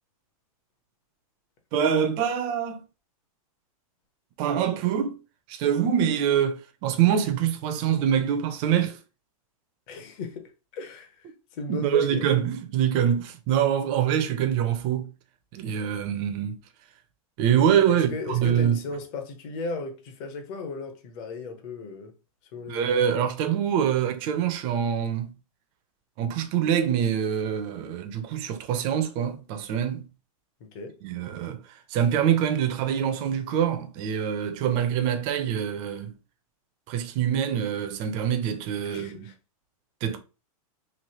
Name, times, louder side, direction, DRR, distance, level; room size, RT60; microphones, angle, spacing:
voice 1, 1.7-2.8 4.4-5.2 5.5-9.0 11.7-15.1 15.5-16.6 17.4-18.8 22.7-25.3 26.2-30.0 31.0-36.1 36.9-39.3 40.0-40.2, right 9 dB, 25° right, 0.4 m, -25 dB
voice 2, 9.9-12.3 17.9-22.1 22.5-23.0 30.7-31.0 38.8-39.3, left 3 dB, 35° left, 0.7 m, -36 dB
3.1 x 2.5 x 2.8 m
supercardioid pair, 160°, 19 cm